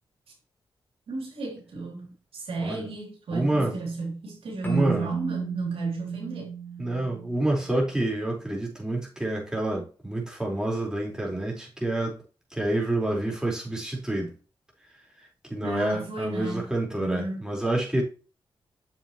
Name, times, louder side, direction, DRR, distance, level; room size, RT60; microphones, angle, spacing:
voice 1, 1.1-6.5 15.6-17.4, right 3 dB, 80° right, 3.0 m, -33 dB
voice 2, 3.3-3.7 4.6-5.1 6.8-12.2 12.5-14.3 15.5-18.0, right 1 dB, 5° right, 4.3 m, -28 dB
Keyboard (musical), 4.6-7.9, right 7 dB, 20° left, 3.0 m, -34 dB
7.4 x 7.2 x 3.0 m
cardioid pair, 75°, 10 cm